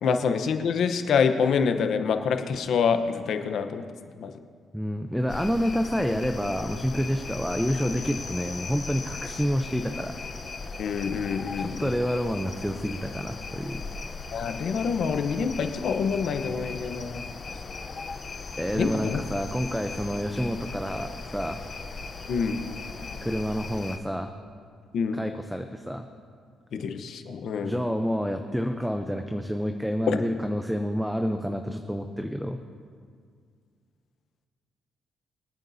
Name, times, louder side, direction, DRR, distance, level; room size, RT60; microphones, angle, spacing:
voice 1, 0.0-3.8 4.2-4.3 10.8-11.9 14.3-17.2 18.7-19.2 22.3-22.6 24.9-25.2 26.7-27.8 30.1-30.2, left 6 dB, 65° left, 7 dB, 0.9 m, -26 dB
voice 2, 4.7-10.1 11.6-13.8 18.6-21.6 23.2-24.3 25.1-26.1 27.6-32.6, equal, ahead, 6 dB, 0.6 m, -28 dB
sound 1, 5.3-24.0, left 4 dB, 40° left, 0.8 m, -38 dB
26.5 x 9.1 x 2.8 m, 2.1 s
cardioid pair, 90°, 0 cm